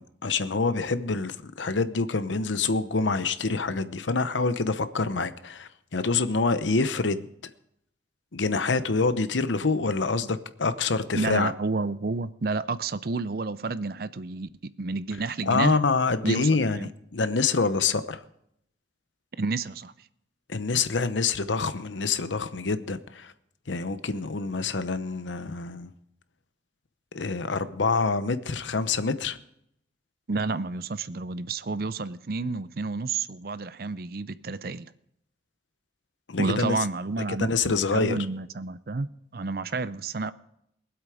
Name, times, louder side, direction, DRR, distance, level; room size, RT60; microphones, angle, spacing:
voice 1, 0.2-7.3 8.3-11.5 15.5-18.2 20.5-23.3 23.7-25.9 27.1-29.4 36.3-36.7 37.4-38.2, left 4 dB, 90° left, 0.9 m, -26 dB
voice 2, 11.1-15.8 16.2-16.9 19.4-19.9 30.3-34.9 36.4-40.3, right 3 dB, 55° right, 0.6 m, -30 dB
22.0 x 8.1 x 5.0 m
head